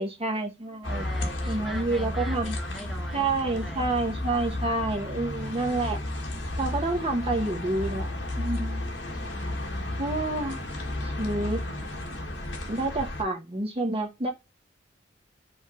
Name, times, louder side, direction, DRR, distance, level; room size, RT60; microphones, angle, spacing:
voice 1, 0.0-1.0 1.5-2.5 3.1-6.0 6.6-8.9 10.0-10.6 11.0-11.6 12.7-14.3, right 2 dB, 30° right, 0.9 m, -29 dB
sound 1, 0.8-13.2, left 1 dB, 75° left, 1.6 m, -33 dB
voice 2, 0.9-3.9, right 1 dB, ahead, 1.2 m, -42 dB
5.6 x 3.3 x 5.4 m
head